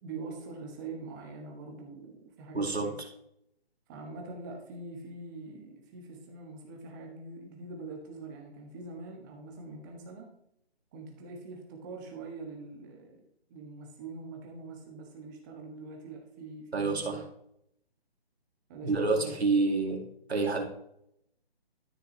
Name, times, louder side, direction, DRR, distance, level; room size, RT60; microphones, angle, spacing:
voice 1, 0.0-3.0 3.9-10.3 10.9-13.2 13.5-17.2 18.7-19.4, right 3 dB, 20° right, 1 dB, 1.4 m, -44 dB
voice 2, 2.5-2.9 16.7-17.2 18.8-20.0 20.3-20.7, right 3 dB, 75° right, 2 dB, 2.5 m, -28 dB
13.0 x 6.3 x 2.9 m, 0.75 s
figure-of-eight pair, 155°, 32 cm